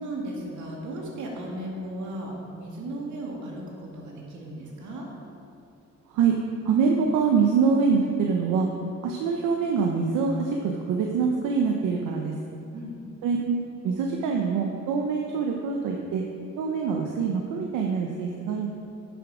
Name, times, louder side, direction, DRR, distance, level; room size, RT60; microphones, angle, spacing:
voice 1, 0.0-5.1 12.7-13.0, right 1 dB, 70° right, -2 dB, 2.3 m, -36 dB
voice 2, 6.6-8.7 9.0-12.4 13.2-13.6 13.8-16.2 16.6-18.7, right 5 dB, 90° right, 1 dB, 0.8 m, -24 dB
9.8 x 7.1 x 5.0 m, 2.7 s
cardioid pair, 90°, 30 cm